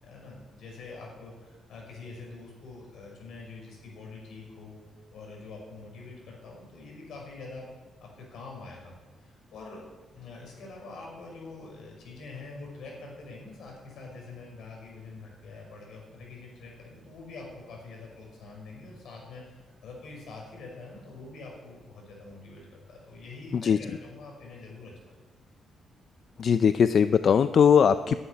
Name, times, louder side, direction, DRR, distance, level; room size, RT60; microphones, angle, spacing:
voice 1, 0.0-4.8 5.1-7.7 8.0-9.9 10.1-25.1, left 3 dB, 75° left, -1 dB, 5.7 m, -45 dB
voice 2, 26.4-28.2, left 7 dB, 45° left, 12 dB, 0.4 m, -20 dB
11.5 x 8.7 x 9.9 m, 1.3 s
cardioid pair, 155°, 0 cm